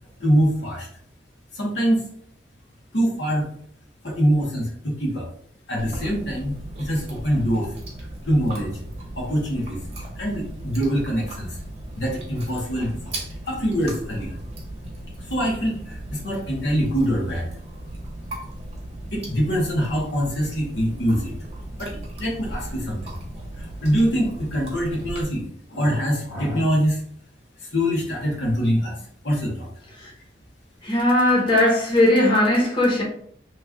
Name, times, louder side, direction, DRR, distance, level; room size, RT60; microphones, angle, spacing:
voice 1, 0.2-0.9 1.5-2.1 2.9-3.5 4.0-5.3 5.7-7.7 8.3-8.8 9.2-9.8 10.2-11.5 12.0-13.1 13.4-14.3 15.3-17.5 19.1-21.3 21.8-23.1 23.6-27.0 27.7-29.7, equal, 75° left, 1.0 m, -24 dB
Chewing mastication, 5.8-25.2, right 1 dB, 35° right, 0.9 m, -37 dB
voice 2, 30.8-33.0, left 1 dB, 25° left, 0.9 m, -18 dB
3.0 x 2.4 x 3.5 m
head